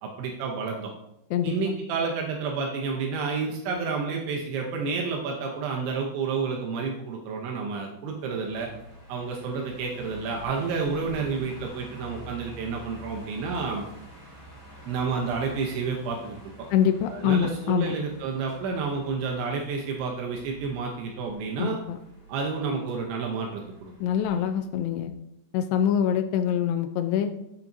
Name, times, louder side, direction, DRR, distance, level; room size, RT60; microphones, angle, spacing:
voice 1, 0.0-0.9 1.4-8.7 9.1-13.8 14.9-16.4 17.1-21.8 22.3-23.9 24.3-24.5, right 5 dB, 80° right, 0 dB, 3.1 m, -30 dB
sound 1, 8.2-24.5, equal, 15° left, 2.5 m, -47 dB
voice 2, 16.7-17.9 21.6-22.0 24.0-25.1 25.5-27.3, left 9 dB, 90° left, 7 dB, 2.4 m, -25 dB
14.5 x 6.0 x 2.6 m, 0.85 s
omnidirectional pair, 5.5 m